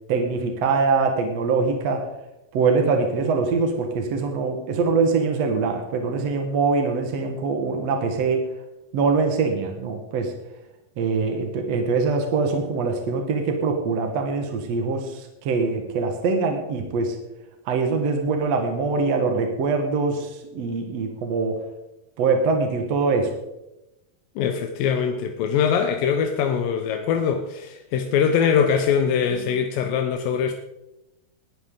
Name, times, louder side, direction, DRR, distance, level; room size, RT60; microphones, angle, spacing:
voice 1, 0.1-2.1 2.5-8.5 8.9-10.3 11.0-17.2 17.7-21.6 22.2-23.3, right 4 dB, 55° right, 4 dB, 2.4 m, -23 dB
voice 2, 24.4-30.5, left 7 dB, 90° left, 5 dB, 2.7 m, -22 dB
20.5 x 11.5 x 3.8 m, 0.92 s
omnidirectional pair, 3.9 m